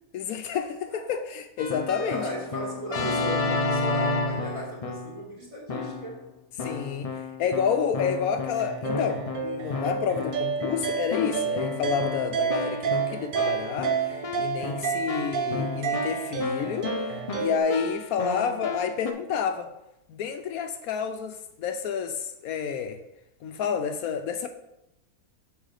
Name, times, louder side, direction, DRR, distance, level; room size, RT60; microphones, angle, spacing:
voice 1, 0.1-2.2 6.6-7.1 7.4-16.9 17.3-19.7 20.1-23.0 23.4-24.5, left 6 dB, 75° left, 7 dB, 1.0 m, -29 dB
voice 2, 0.9-1.2 2.0-6.2, equal, 20° right, -4 dB, 2.1 m, -36 dB
Keyboard (musical), 1.6-5.2 5.7-6.2 6.6-19.1, left 3 dB, 55° left, 0.4 m, -32 dB
sound 1, 8.5-17.6, right 7 dB, 80° right, 0.4 m, -30 dB
6.4 x 5.6 x 4.8 m, 0.88 s
omnidirectional pair, 1.6 m